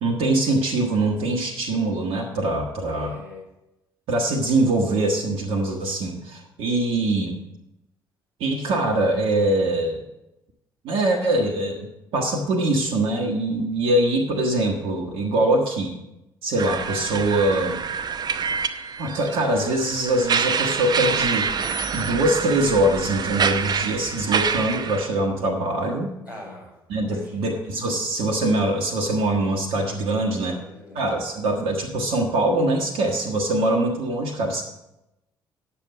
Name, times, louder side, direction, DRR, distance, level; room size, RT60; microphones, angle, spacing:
voice 1, 0.0-3.2 4.1-7.4 8.4-10.0 10.8-11.9 12.1-16.0 16.4-17.8 19.0-21.5 21.9-26.1 26.9-30.5 30.9-34.6, right 2 dB, 60° right, 0 dB, 1.2 m, -23 dB
voice 2, 2.9-3.4 26.2-26.7 27.0-27.6 30.0-31.0, left 2 dB, 85° left, -9 dB, 4.8 m, -41 dB
sound 1, 16.6-25.1, right 6 dB, 40° right, 0.7 m, -26 dB
9.6 x 7.1 x 6.3 m, 0.91 s
figure-of-eight pair, 45°, 11 cm